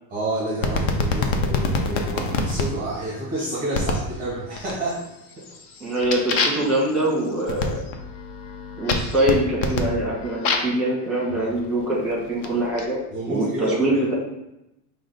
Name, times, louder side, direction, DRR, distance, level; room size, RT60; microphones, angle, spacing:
voice 1, 0.1-5.0 5.4-5.6 11.3-11.5 13.1-14.0, right 1 dB, 20° right, -3 dB, 0.5 m, -29 dB
sound 1, 0.6-2.7 3.7-4.1 4.6-5.0 5.4-10.8 11.6-12.8, left 3 dB, 60° left, 0.6 m, -26 dB
voice 2, 5.8-7.8 8.8-14.1, right 1 dB, ahead, -5 dB, 1.0 m, -24 dB
4.7 x 2.0 x 3.8 m, 0.88 s
supercardioid pair, 170°, 47 cm